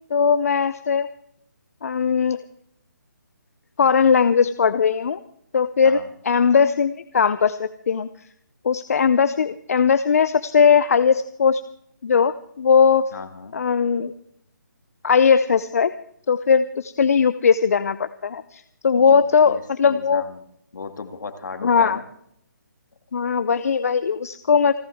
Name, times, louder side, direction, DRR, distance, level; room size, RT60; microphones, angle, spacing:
voice 1, 0.1-1.1 1.8-2.4 3.8-5.2 5.5-6.0 6.2-8.1 8.6-11.6 12.0-13.0 13.5-14.1 15.0-15.9 16.3-20.2 21.6-22.0 23.1-24.8, left 6 dB, 50° left, 13 dB, 0.6 m, -19 dB
voice 2, 13.1-13.6 18.9-20.4 20.7-22.0, left 4 dB, 70° left, 8 dB, 2.1 m, -36 dB
29.5 x 11.0 x 3.5 m, 0.69 s
hypercardioid pair, 165°, 10 cm